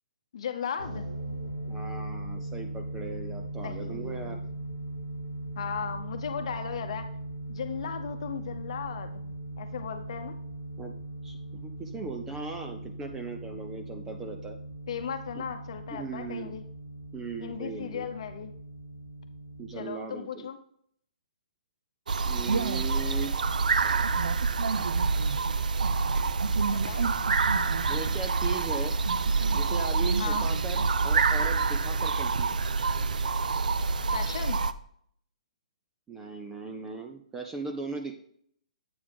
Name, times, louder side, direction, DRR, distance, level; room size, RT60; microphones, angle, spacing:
voice 1, 0.3-1.1 3.6-4.4 5.6-7.1 7.5-10.3 14.9-16.6 17.4-18.5 19.7-20.6 26.7-27.0 30.2-30.5 34.1-34.6, left 7 dB, 45° left, 7 dB, 0.9 m, -36 dB
sound 1, 0.8-19.8, right 1 dB, 65° right, 3.5 m, -39 dB
voice 2, 1.7-4.4 10.8-10.9 11.2-14.6 15.4-15.5 15.9-16.6 17.1-18.1 19.6-20.5 22.2-23.3 27.9-29.0 29.5-32.6 36.1-38.1, right 4 dB, 10° right, 4 dB, 0.4 m, -38 dB
sound 2, 22.1-34.7, right 4 dB, 90° right, 0.5 m, -26 dB
8.6 x 4.1 x 4.6 m, 0.65 s
hypercardioid pair, 170°, 4 cm